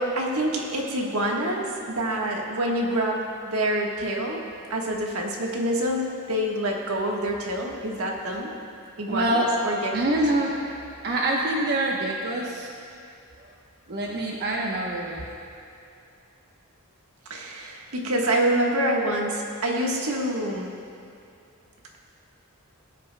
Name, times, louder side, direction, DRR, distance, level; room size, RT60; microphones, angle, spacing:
voice 1, 0.0-4.4 4.7-8.5 9.0-10.2 17.3-20.7, right 1 dB, 75° right, -1 dB, 1.4 m, -26 dB
voice 2, 9.1-9.5 9.9-10.6 11.0-12.7 13.4-13.5 13.9-15.2, right 1 dB, 50° right, -3 dB, 0.9 m, -25 dB
18.5 x 9.3 x 2.2 m, 2.6 s
head